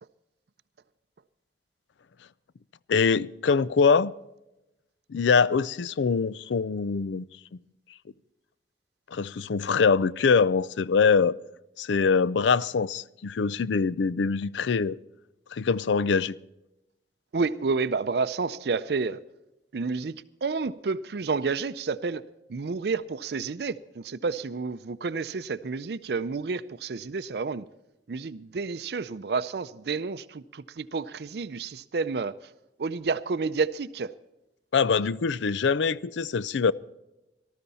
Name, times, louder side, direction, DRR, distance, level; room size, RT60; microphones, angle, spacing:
voice 1, 2.9-4.1 5.1-7.3 9.1-11.3 11.8-15.0 15.5-16.3 34.7-36.7, left 5 dB, 85° left, 0.4 m, -23 dB
voice 2, 17.3-19.2 19.7-22.2 22.5-27.6 28.1-32.3 32.8-34.1, right 4 dB, 65° right, 0.5 m, -30 dB
18.5 x 13.0 x 4.1 m
head